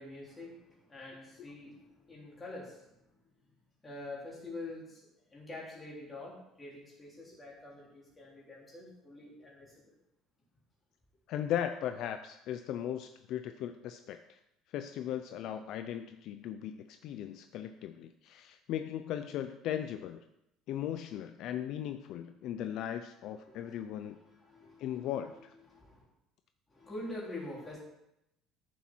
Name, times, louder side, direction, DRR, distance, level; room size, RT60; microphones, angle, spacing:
voice 1, 0.0-3.3 3.8-10.0 23.4-26.1 26.7-27.8, left 2 dB, 10° left, -5 dB, 3.5 m, -46 dB
voice 2, 11.3-14.4 14.7-20.2 20.7-24.2 24.8-25.5, left 10 dB, 50° left, 8 dB, 0.5 m, -38 dB
13.5 x 7.3 x 4.5 m, 0.85 s
cardioid pair, 175°, 0 cm